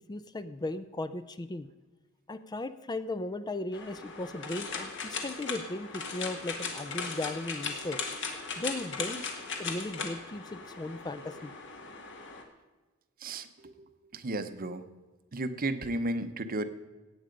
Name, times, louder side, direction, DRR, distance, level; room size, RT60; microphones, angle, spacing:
voice 1, 0.1-1.7 2.3-8.0 8.6-9.3 9.6-11.5, left 2 dB, 20° left, 12 dB, 0.4 m, -37 dB
sound 1, 3.7-12.4, left 5 dB, 60° left, 1.7 m, -38 dB
voice 2, 13.2-14.8 15.3-16.6, right 2 dB, 45° right, 11 dB, 0.8 m, -34 dB
16.0 x 8.8 x 5.2 m, 1.2 s
head